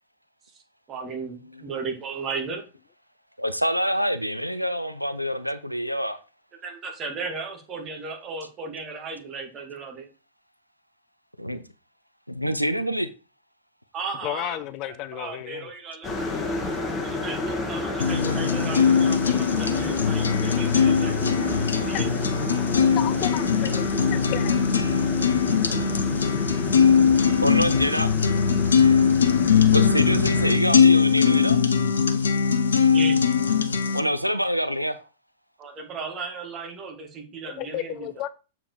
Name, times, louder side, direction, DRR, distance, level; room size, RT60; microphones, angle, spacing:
voice 1, 0.9-2.7 6.6-10.1 13.9-14.6 15.1-16.1 17.0-22.3 32.9-33.2 35.6-38.1, right 4 dB, 25° right, 2.2 m, -35 dB
voice 2, 3.4-6.2 11.4-11.6 12.3-13.1 27.4-28.1 29.7-31.6 33.9-35.1, equal, 90° right, 0.6 m, -26 dB
voice 3, 14.2-15.7 22.1-22.3 23.0-24.6 37.6-38.3, left 13 dB, 35° left, 0.5 m, -33 dB
sound 1, 16.0-30.6, left 2 dB, 20° left, 1.7 m, -31 dB
sound 2, 18.0-34.0, left 6 dB, 70° left, 0.7 m, -21 dB
7.3 x 4.8 x 4.9 m
figure-of-eight pair, 100°, 0 cm